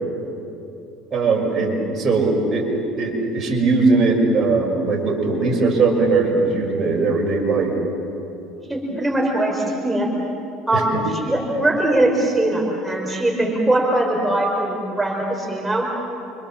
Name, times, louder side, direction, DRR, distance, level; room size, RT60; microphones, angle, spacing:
voice 1, 1.1-2.7 3.0-7.7 10.7-11.0, right 3 dB, 35° right, 0 dB, 6.0 m, -19 dB
voice 2, 8.7-10.1 10.7-10.9 11.2-15.9, right 1 dB, 10° right, -1 dB, 5.1 m, -21 dB
27.0 x 25.5 x 7.5 m, 2.9 s
supercardioid pair, 90°, 0 cm